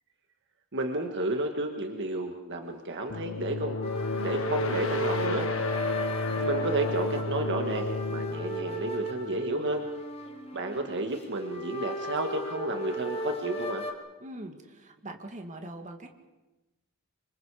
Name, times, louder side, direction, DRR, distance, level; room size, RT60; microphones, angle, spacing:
voice 1, 0.7-3.8 4.1-5.5 6.3-9.8 10.5-13.9, right 2 dB, 55° right, 4 dB, 1.7 m, -31 dB
sound 1, 3.1-9.8, left 3 dB, 65° left, 1.5 m, -33 dB
sound 2, 3.8-13.9, equal, 30° left, 2.2 m, -35 dB
voice 2, 14.2-16.1, right 1 dB, 35° right, 4 dB, 2.3 m, -42 dB
27.0 x 25.5 x 5.0 m, 1.1 s
head